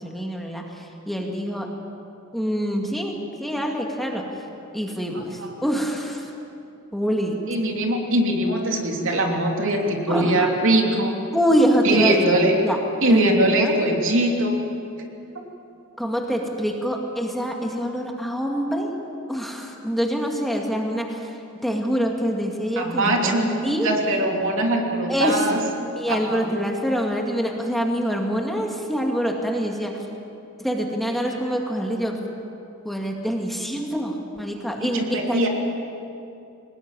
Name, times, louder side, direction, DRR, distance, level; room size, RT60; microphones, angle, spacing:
voice 1, 0.0-1.7 2.3-4.2 4.7-6.3 6.9-7.4 10.1-10.5 11.3-12.2 12.6-12.8 13.1-13.8 16.0-18.9 19.3-21.4 21.6-23.9 25.1-25.6 26.0-29.9 30.6-32.3 32.8-35.5, equal, ahead, 1 dB, 2.1 m, -25 dB
voice 2, 7.5-11.1 11.8-12.5 13.0-14.6 22.8-25.6 26.1-26.5 34.9-35.5, right 1 dB, 60° right, 1 dB, 3.2 m, -21 dB
23.0 x 20.0 x 9.2 m, 2.7 s
head